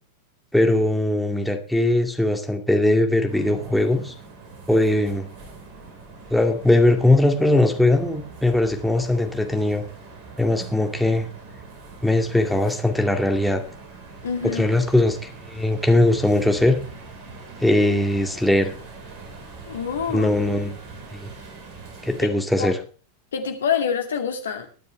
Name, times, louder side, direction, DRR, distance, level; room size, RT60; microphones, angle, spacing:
voice 1, 0.5-4.1 4.7-5.3 6.3-9.8 10.4-11.3 12.0-13.6 14.5-16.8 17.6-18.7 20.1-20.8 21.1-21.3 22.0-22.8, left 1 dB, ahead, 3 dB, 2.1 m, -20 dB
sound 1, 3.3-22.3, right 3 dB, 40° right, 4.4 m, -42 dB
voice 2, 14.2-14.6 19.7-20.3 22.2-22.3 22.6-22.7 23.3-24.7, left 7 dB, 65° left, 5 dB, 2.3 m, -26 dB
21.5 x 9.4 x 3.3 m, 0.38 s
figure-of-eight pair, 90°, 0 cm